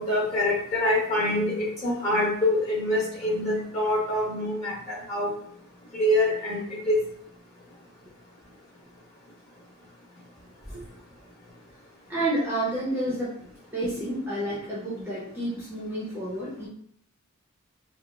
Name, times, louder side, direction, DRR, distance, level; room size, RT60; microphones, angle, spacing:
voice 1, 0.0-5.3 5.9-7.0, left 1 dB, 30° left, -6 dB, 1.3 m, -25 dB
voice 2, 12.1-16.7, right 1 dB, 10° right, -7 dB, 0.7 m, -30 dB
4.7 x 2.1 x 2.4 m, 0.66 s
head